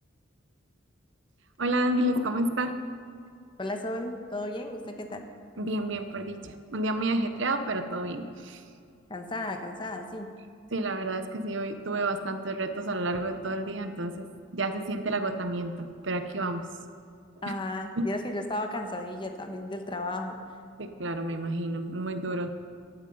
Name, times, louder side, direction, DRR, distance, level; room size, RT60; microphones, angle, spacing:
voice 1, 1.6-2.8 5.6-8.6 10.7-14.3 14.5-16.6 17.5-17.6 18.0-18.1 20.8-22.7, right 1 dB, 65° right, 9 dB, 1.0 m, -30 dB
voice 2, 3.6-5.3 9.1-10.3 17.4-20.4, left 1 dB, 25° left, 5 dB, 1.2 m, -34 dB
15.5 x 12.0 x 5.5 m, 2.3 s
head